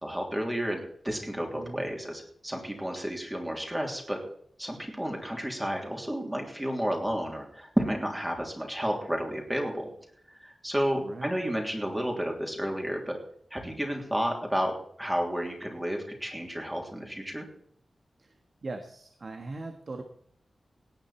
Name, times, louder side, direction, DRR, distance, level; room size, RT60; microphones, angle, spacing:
voice 1, 0.0-4.2 4.6-9.9 10.3-13.2 13.5-17.5, equal, 10° right, 1 dB, 3.2 m, -31 dB
voice 2, 1.5-1.8 11.0-11.3 18.2-18.4 18.6-20.0, right 3 dB, 45° right, 5 dB, 1.5 m, -40 dB
17.5 x 9.1 x 4.4 m, 0.66 s
wide cardioid pair, 125°, 0 cm